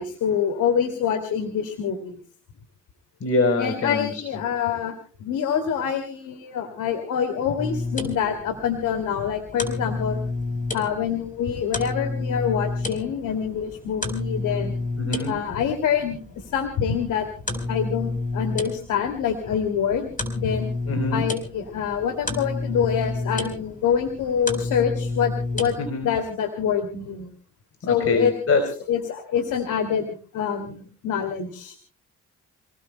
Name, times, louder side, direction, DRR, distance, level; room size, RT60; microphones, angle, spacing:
voice 1, 0.0-2.2 3.6-10.2 10.7-14.8 15.3-17.3 17.7-20.7 21.1-25.8 26.0-27.3 27.9-28.3 28.9-31.8, left 8 dB, 80° left, 6 dB, 2.6 m, -26 dB
voice 2, 3.2-4.2 15.0-15.3 20.9-21.2 25.8-26.1 27.8-28.6, left 3 dB, 50° left, 6 dB, 3.9 m, -24 dB
sound 1, 7.6-25.9, left 3 dB, 25° left, 4.3 m, -31 dB
29.0 x 19.5 x 2.2 m, 0.42 s
cardioid pair, 90°, 30 cm